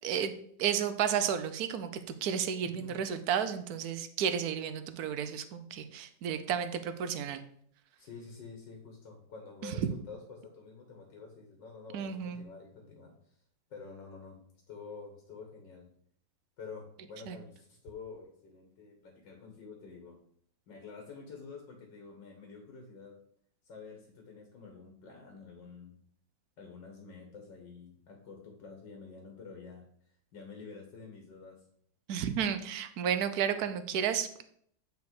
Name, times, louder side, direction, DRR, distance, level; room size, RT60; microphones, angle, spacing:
voice 1, 0.0-0.3 0.6-7.4 9.6-9.7 11.9-12.4 17.3-17.4 32.1-34.4, right 8 dB, 65° right, 10 dB, 1.1 m, -32 dB
voice 2, 2.6-3.0 8.0-13.3 13.7-14.4 14.7-15.9 16.6-20.2 20.7-23.2 23.6-26.0 26.6-31.6, left 4 dB, 75° left, 2 dB, 2.0 m, -48 dB
8.0 x 5.1 x 4.8 m, 0.65 s
omnidirectional pair, 2.0 m